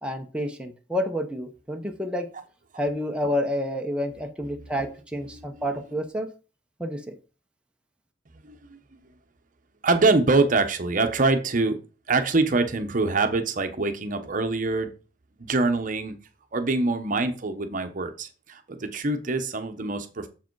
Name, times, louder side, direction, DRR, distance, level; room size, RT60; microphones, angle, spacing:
voice 1, 0.0-2.3 2.8-6.3 6.8-7.2, equal, 5° right, 3 dB, 0.8 m, -29 dB
voice 2, 8.4-8.8 9.8-11.8 12.1-14.9 15.4-16.2 16.5-20.3, right 3 dB, 50° right, 8 dB, 0.9 m, -24 dB
7.1 x 4.8 x 4.6 m, 0.34 s
head